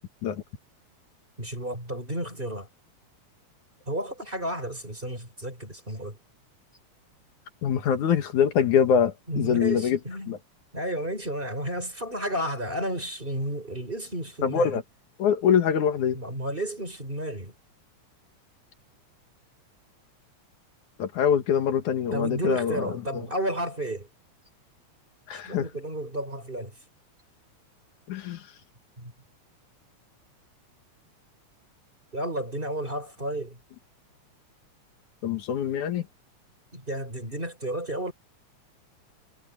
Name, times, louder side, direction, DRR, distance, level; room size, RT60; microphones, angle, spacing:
voice 1, 1.4-2.7 3.9-6.2 9.3-10.4 10.7-14.8 16.1-17.5 22.1-24.1 25.3-26.7 29.0-29.1 32.1-33.6 36.7-38.1, right 1 dB, 15° right, 4.7 m, -32 dB
voice 2, 7.6-10.0 10.3-10.4 14.4-14.8 15.2-16.2 21.0-23.3 25.3-25.7 28.1-28.5 35.2-36.1, left 8 dB, 90° left, 3.2 m, -24 dB
omnidirectional pair, 3.3 m